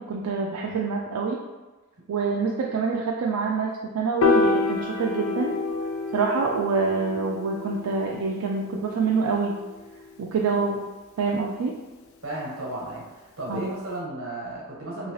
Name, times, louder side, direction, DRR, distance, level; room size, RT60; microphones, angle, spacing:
voice 1, 0.0-1.4 2.1-5.5 6.1-9.5 10.2-10.8 11.2-11.7 13.5-13.7, right 4 dB, 80° right, -1 dB, 0.3 m, -26 dB
Piano, 4.2-10.5, left 3 dB, 65° left, 0.4 m, -28 dB
voice 2, 12.2-15.1, right 1 dB, 60° right, -4 dB, 1.1 m, -34 dB
2.8 x 2.7 x 3.0 m, 1.2 s
head